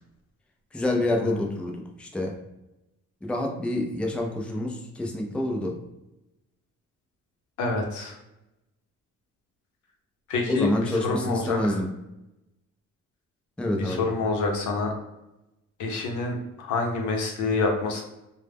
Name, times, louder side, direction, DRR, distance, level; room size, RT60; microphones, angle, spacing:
voice 1, 0.7-2.4 3.2-5.8 10.5-11.9 13.6-14.0, left 1 dB, 5° left, 2 dB, 0.4 m, -27 dB
voice 2, 7.6-8.2 10.3-11.8 13.8-14.9 15.8-18.0, left 3 dB, 80° left, 2 dB, 0.7 m, -27 dB
2.1 x 2.0 x 3.3 m, 0.92 s
cardioid pair, 90°, 30 cm